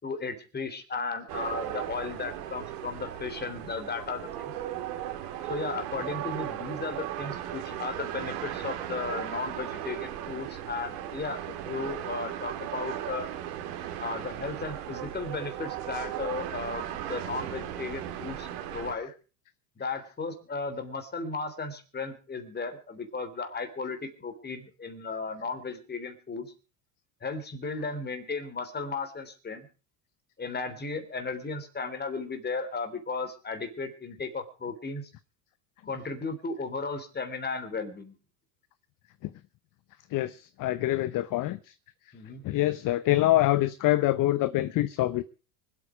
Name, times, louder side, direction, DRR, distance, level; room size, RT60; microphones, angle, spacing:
voice 1, 0.0-4.5 5.5-13.3 14.0-19.1 19.8-26.5 27.2-29.7 30.4-35.1 35.9-38.1 42.1-42.4, left 4 dB, 20° left, 3.5 m, -35 dB
sound 1, 1.3-19.0, right 11 dB, 80° right, 3.1 m, -37 dB
voice 2, 40.1-41.7 42.4-45.2, left 15 dB, 45° left, 0.8 m, -25 dB
25.0 x 8.7 x 4.8 m
supercardioid pair, 110°, 45 cm